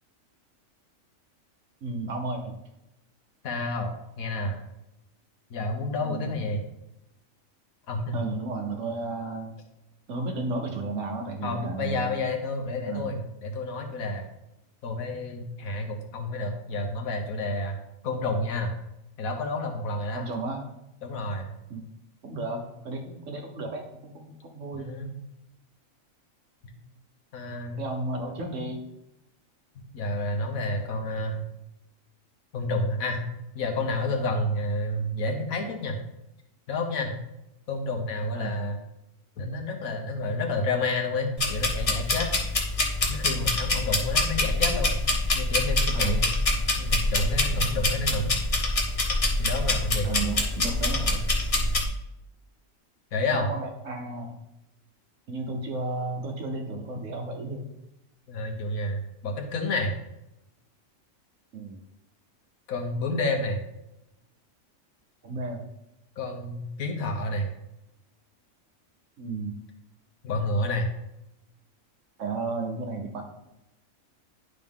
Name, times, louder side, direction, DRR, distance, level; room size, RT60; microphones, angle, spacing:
voice 1, 1.8-2.6 6.0-6.4 8.1-9.5 10.1-12.2 12.9-13.1 20.1-20.7 21.7-21.9 22.2-24.9 27.8-28.8 38.3-38.6 45.9-46.1 50.0-51.3 53.3-54.4 55.3-57.7 61.5-61.8 65.2-65.7 69.2-69.6 72.2-73.2, right 2 dB, 65° right, 2 dB, 1.2 m, -33 dB
voice 2, 3.4-4.6 5.5-6.6 7.9-8.3 11.4-14.3 14.8-17.8 18.0-18.7 19.2-20.2 21.0-21.5 24.7-25.1 27.3-27.8 29.7-31.4 32.5-33.2 33.5-36.0 36.7-37.1 37.7-38.8 39.4-42.3 43.0-45.0 45.3-46.3 46.8-48.3 49.4-50.1 53.1-53.5 58.3-59.9 62.7-63.6 66.2-67.5 70.2-70.9, left 2 dB, 85° left, 3 dB, 1.5 m, -29 dB
sound 1, 41.4-51.8, left 2 dB, 30° left, 0.9 m, -25 dB
10.5 x 3.9 x 3.6 m, 0.88 s
omnidirectional pair, 1.4 m